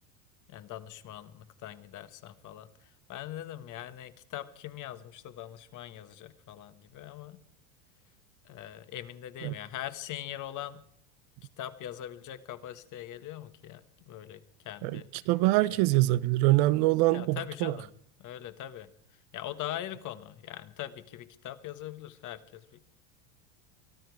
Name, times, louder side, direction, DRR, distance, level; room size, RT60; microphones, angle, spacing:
voice 1, 0.5-2.7 3.1-7.4 8.4-10.8 11.6-15.3 15.7-15.8 16.4-16.6 17.1-17.9 18.2-18.9 19.3-22.9, left 12 dB, 45° left, 1.6 m, -42 dB
voice 2, 15.3-17.8, right 18 dB, 60° right, 0.8 m, -24 dB
23.5 x 12.5 x 4.7 m
supercardioid pair, 110°, 43 cm